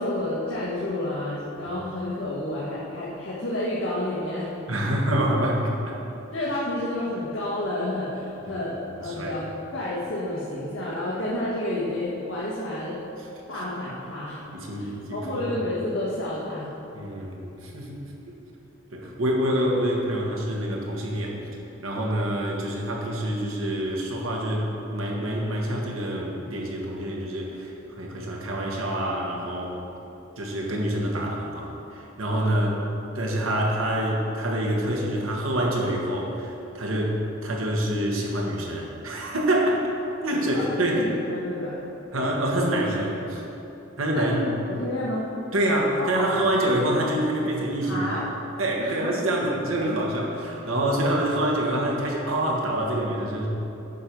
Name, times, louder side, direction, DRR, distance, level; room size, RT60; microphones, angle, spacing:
voice 1, 0.0-4.5 6.3-13.0 13.5-14.4 14.8-16.7 40.5-41.8 44.1-45.3 46.0-46.4 47.8-48.3 48.8-49.0, left 1 dB, 75° left, -8 dB, 1.6 m, -30 dB
voice 2, 4.7-6.0 8.4-8.6 9.0-9.3 14.5-15.5 16.9-18.0 18.9-21.4 21.8-29.8 30.4-32.8 33.1-39.8 40.2-41.0 42.1-43.4 44.0-44.5 45.5-48.1 48.6-53.5, right 1 dB, 80° right, -2 dB, 1.5 m, -26 dB
9.3 x 6.2 x 5.3 m, 3.0 s
head